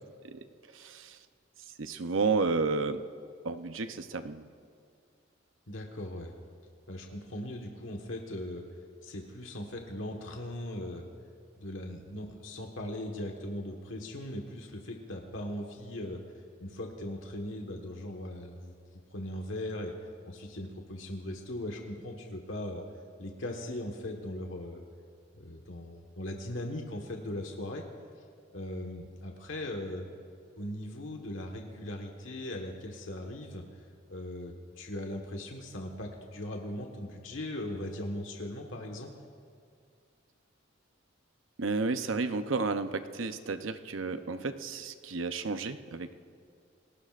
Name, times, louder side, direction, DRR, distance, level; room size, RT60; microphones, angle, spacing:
voice 1, 0.7-1.2 1.8-3.0 3.4-4.4 41.6-46.1, right 4 dB, 90° right, 9 dB, 0.8 m, -32 dB
voice 2, 5.7-6.3 6.9-8.6 9.0-11.1 11.6-16.2 16.6-18.7 19.1-19.9 20.3-22.8 23.2-24.8 25.3-27.8 28.5-30.1 30.6-33.6 34.1-39.1, left 1 dB, 85° left, 1 dB, 1.5 m, -39 dB
29.0 x 19.5 x 2.5 m, 2.3 s
head